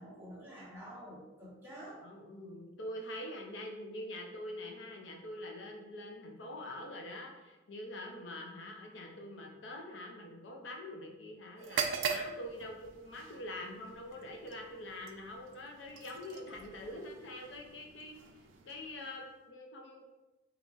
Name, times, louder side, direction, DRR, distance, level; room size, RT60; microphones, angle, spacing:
voice 1, 0.0-2.0, equal, 10° right, -7 dB, 1.1 m, -48 dB
voice 2, 2.0-18.2 18.7-20.1, left 1 dB, 65° left, 1 dB, 0.6 m, -45 dB
sound 1, 11.6-19.4, right 6 dB, 80° right, 0.4 m, -42 dB
3.8 x 2.9 x 2.4 m, 1.1 s
head